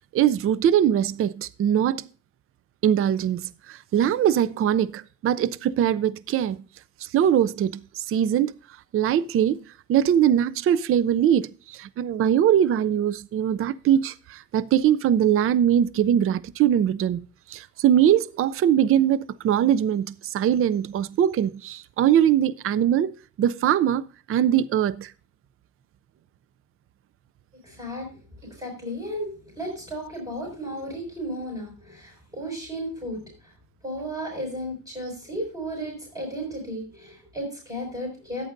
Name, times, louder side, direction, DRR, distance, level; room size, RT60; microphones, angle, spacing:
voice 1, 0.1-2.1 2.8-6.6 7.0-8.5 8.9-9.6 9.9-17.2 17.5-23.1 23.4-24.0 24.3-25.1, right 10 dB, 40° right, 0.4 m, -22 dB
voice 2, 27.6-28.1 28.4-33.5 33.8-38.4, equal, 10° right, 5.3 m, -34 dB
14.0 x 9.1 x 2.6 m
cardioid pair, 125°, 34 cm